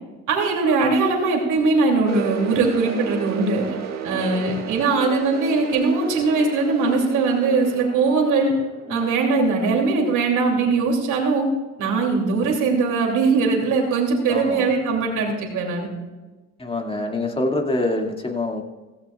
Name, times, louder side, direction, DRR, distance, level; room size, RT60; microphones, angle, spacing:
voice 1, 0.3-3.6 4.0-8.5 8.9-11.5 11.8-15.9, right 4 dB, 85° right, 1 dB, 2.7 m, -21 dB
sound 1, 2.1-9.7, right 6 dB, 60° right, 1.7 m, -33 dB
voice 2, 4.1-4.4 8.9-9.2 11.8-12.0 14.3-14.7 16.6-18.6, left 2 dB, 20° left, 1 dB, 2.2 m, -26 dB
16.0 x 15.5 x 2.4 m, 1.2 s
cardioid pair, 90°, 30 cm